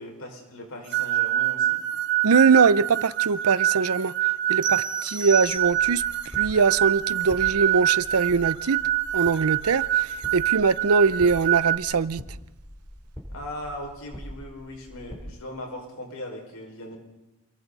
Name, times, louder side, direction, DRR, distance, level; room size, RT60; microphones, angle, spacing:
voice 1, 0.0-1.8 13.3-17.0, left 1 dB, 80° left, 5.5 m, -39 dB
sound 1, 0.9-11.8, right 13 dB, 50° right, 1.2 m, -25 dB
voice 2, 2.2-4.1 4.5-6.0 6.4-8.8 9.1-12.2, right 5 dB, 90° right, 0.6 m, -22 dB
sound 2, 4.6-6.2, right 3 dB, 35° right, 1.9 m, -35 dB
sound 3, 5.4-15.2, equal, 10° left, 3.8 m, -44 dB
28.5 x 22.0 x 4.1 m
head